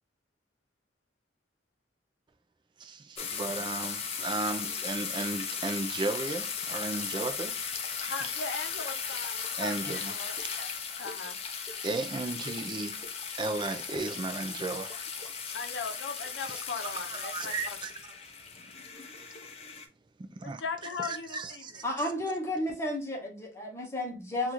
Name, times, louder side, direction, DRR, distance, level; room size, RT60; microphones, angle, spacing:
voice 1, 2.8-7.6 8.0-8.1 9.6-10.1 10.7-10.8 11.8-13.0 13.4-14.9 15.5-15.6 15.9-16.0 16.5-16.6 17.1-17.9 20.2-20.6 21.0-21.8, right 3 dB, 25° right, 0.4 m, -35 dB
sound 1, 3.2-19.9, left 6 dB, 35° left, 0.5 m, -37 dB
voice 2, 8.1-10.7 11.0-11.4 15.5-17.8 20.4-21.6, left 4 dB, 80° left, 0.6 m, -38 dB
voice 3, 21.8-24.5, left 1 dB, 15° left, 0.9 m, -32 dB
3.0 x 2.4 x 4.0 m
head